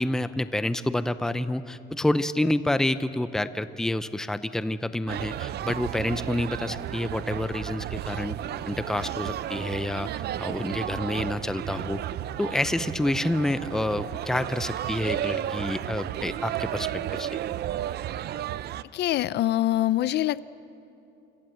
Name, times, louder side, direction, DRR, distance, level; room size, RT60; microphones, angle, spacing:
voice 1, 0.0-8.4 8.7-10.1 10.4-12.0 12.4-17.3, left 1 dB, ahead, 13 dB, 0.6 m, -28 dB
sound 1, 5.1-18.8, right 12 dB, 50° right, 0.6 m, -33 dB
voice 2, 18.9-20.5, left 14 dB, 55° left, 18 dB, 0.5 m, -24 dB
28.5 x 26.0 x 7.9 m, 2.9 s
cardioid pair, 170°, 21 cm